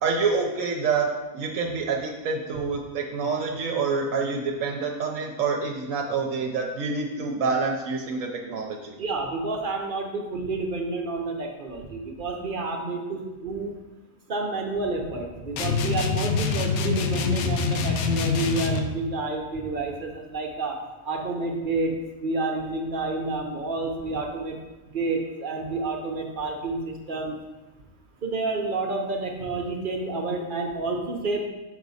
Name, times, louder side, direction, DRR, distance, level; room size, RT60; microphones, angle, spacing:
voice 1, 0.0-8.9, right 4 dB, 70° right, 1 dB, 1.0 m, -27 dB
voice 2, 9.0-13.8 14.3-20.8 21.0-21.9 22.2-24.6 24.9-27.3 28.2-31.5, right 3 dB, 50° right, 2 dB, 0.7 m, -29 dB
sound 1, 15.6-18.9, left 5 dB, 85° left, 1.1 m, -25 dB
5.9 x 5.0 x 4.0 m, 1.1 s
omnidirectional pair, 1.5 m